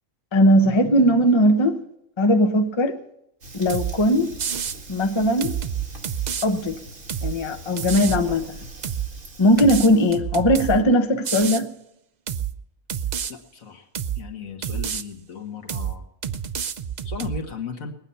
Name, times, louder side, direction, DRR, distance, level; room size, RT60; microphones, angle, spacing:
voice 1, 0.3-1.8 2.2-3.0 3.5-4.3 4.9-5.6 6.4-6.8 7.2-8.6 9.4-11.7, equal, 25° left, 0.8 m, -19 dB
Fire, 3.4-10.1, right 2 dB, 70° right, 2.2 m, -42 dB
sound 1, 3.7-4.0 4.4-4.8 5.4-6.5 7.1-7.4 7.8-8.2 8.8-9.1 9.6-10.8 11.2-11.6 12.3-12.5 12.9-13.3 13.9-14.2 14.6-15.0 15.7-16.0 16.2-17.4, right 8 dB, 55° right, 0.5 m, -28 dB
voice 2, 13.3-13.9 14.2-16.0 17.0-17.9, left 6 dB, 80° left, 1.9 m, -35 dB
20.0 x 9.0 x 5.7 m
omnidirectional pair, 1.4 m